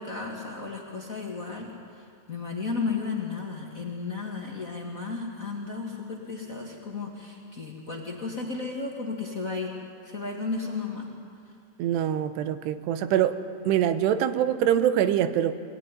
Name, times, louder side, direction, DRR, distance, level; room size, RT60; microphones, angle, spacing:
voice 1, 0.0-9.7 10.0-11.1, left 4 dB, 45° left, -1 dB, 1.1 m, -34 dB
voice 2, 11.8-13.4 13.7-15.5, right 10 dB, 85° right, 11 dB, 3.0 m, -24 dB
22.5 x 16.5 x 9.9 m, 2.3 s
omnidirectional pair, 4.9 m